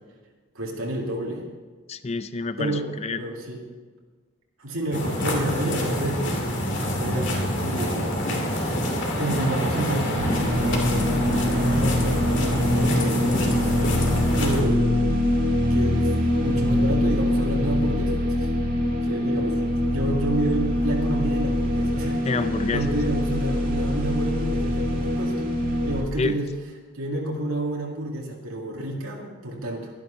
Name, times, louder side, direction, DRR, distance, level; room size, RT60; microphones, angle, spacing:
voice 1, 0.5-1.4 2.6-3.6 4.6-6.4 6.7-8.6 9.2-14.9 15.7-18.5 19.0-22.2 22.7-25.4 25.8-26.5 26.9-29.9, right 1 dB, 75° right, -1 dB, 2.2 m, -30 dB
voice 2, 1.9-3.3 22.2-22.8 26.2-26.4, left 3 dB, 30° left, 12 dB, 0.4 m, -28 dB
sound 1, 4.9-14.6, equal, 55° left, 2.6 m, -26 dB
sound 2, 10.2-26.0, left 1 dB, 40° right, 1.8 m, -24 dB
12.5 x 11.0 x 5.6 m, 1.4 s
head